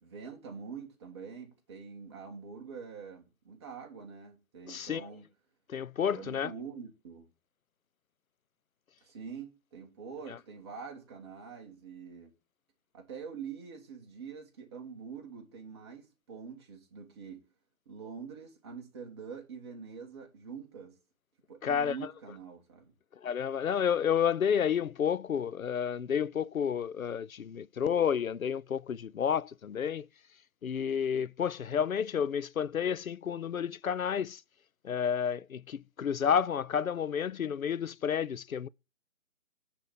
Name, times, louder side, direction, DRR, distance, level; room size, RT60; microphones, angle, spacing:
voice 1, 0.0-5.2 6.1-7.3 9.0-12.3 12.9-17.5 17.8-21.0 21.5-22.9, right 6 dB, 20° right, 1.6 m, -45 dB
voice 2, 4.7-5.1 5.7-6.5 10.3-10.4 21.6-22.0 23.2-30.1 30.6-34.4 34.8-38.7, left 8 dB, 90° left, 0.6 m, -30 dB
9.9 x 4.2 x 7.4 m
figure-of-eight pair, 160°, 41 cm